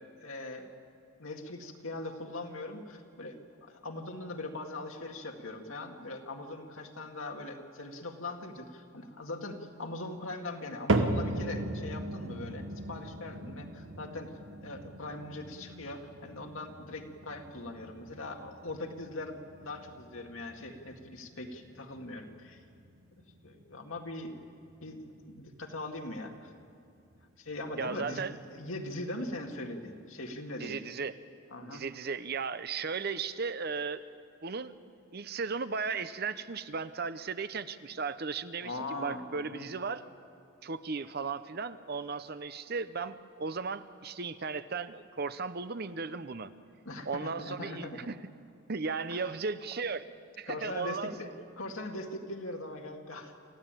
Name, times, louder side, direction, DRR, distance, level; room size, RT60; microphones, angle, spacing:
voice 1, 0.2-0.7 1.2-14.3 14.6-22.6 23.4-24.3 24.8-26.5 27.4-28.2 28.5-30.8 31.5-31.8 38.6-39.7 46.8-48.0 49.1-49.2 50.5-51.3 51.6-53.3, left 2 dB, 75° left, 3 dB, 2.1 m, -41 dB
sound 1, 10.9-27.2 27.5-28.0 28.6-28.7 29.6-29.7, right 2 dB, 65° right, 1.3 m, -38 dB
voice 2, 27.8-28.3 30.6-31.2 31.6-34.0 34.4-34.7 35.1-40.0 40.6-46.5 47.1-48.2 48.7-50.1 50.4-51.3, right 4 dB, 50° right, 13 dB, 0.7 m, -36 dB
27.5 x 14.5 x 9.0 m, 2.4 s
head